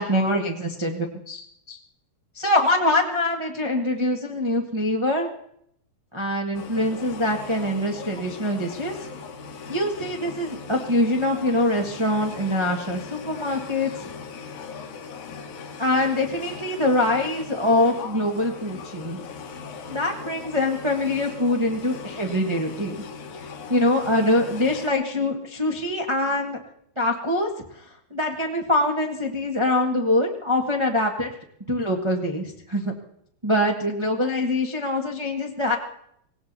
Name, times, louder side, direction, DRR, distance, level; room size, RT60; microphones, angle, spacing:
voice 1, 0.0-1.8 2.3-5.3 6.1-9.0 9.7-14.1 15.8-19.2 19.9-22.9 23.7-26.6 27.0-27.5 28.1-31.3 31.7-32.9 33.4-35.8, left 1 dB, 50° right, 1 dB, 0.3 m, -24 dB
sound 1, 6.5-24.9, left 5 dB, 85° left, 2.8 m, -39 dB
18.0 x 17.5 x 4.0 m, 0.70 s
omnidirectional pair, 3.3 m